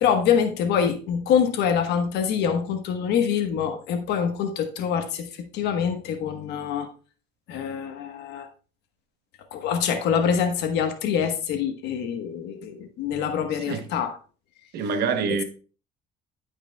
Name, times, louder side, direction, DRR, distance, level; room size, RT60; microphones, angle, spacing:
voice 1, 0.0-6.9 7.5-8.5 9.5-14.2, left 7 dB, 85° left, 1.2 m, -25 dB
voice 2, 14.7-15.4, right 5 dB, 75° right, 0.9 m, -25 dB
12.0 x 5.0 x 2.3 m
cardioid pair, 110°, 17 cm